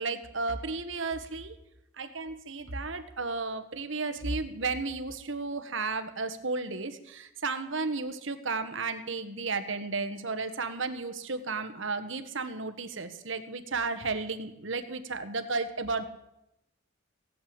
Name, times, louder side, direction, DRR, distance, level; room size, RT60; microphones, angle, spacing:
voice 1, 0.0-1.6 2.0-16.1, right 3 dB, 65° right, 9 dB, 1.5 m, -33 dB
17.0 x 8.9 x 8.9 m, 0.85 s
head